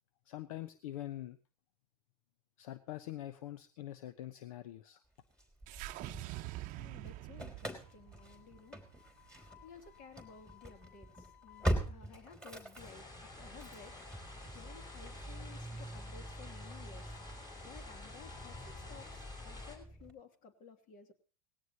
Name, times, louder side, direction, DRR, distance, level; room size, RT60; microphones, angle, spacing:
voice 1, 0.3-1.4 2.6-5.0, left 13 dB, 65° left, 14 dB, 0.9 m, -44 dB
Engine starting / Slam, 5.4-6.8 7.1-20.1, right 1 dB, 5° left, 3.2 m, -43 dB
sound 1, 5.7-10.0, right 17 dB, 45° right, 0.8 m, -46 dB
voice 2, 6.6-8.8 9.3-17.2 17.6-21.1, left 6 dB, 45° left, 8 dB, 2.6 m, -56 dB
sound 2, 12.8-19.8, left 2 dB, 20° left, 5.5 m, -50 dB
18.5 x 17.0 x 2.9 m, 0.36 s
hypercardioid pair, 100°, 19 cm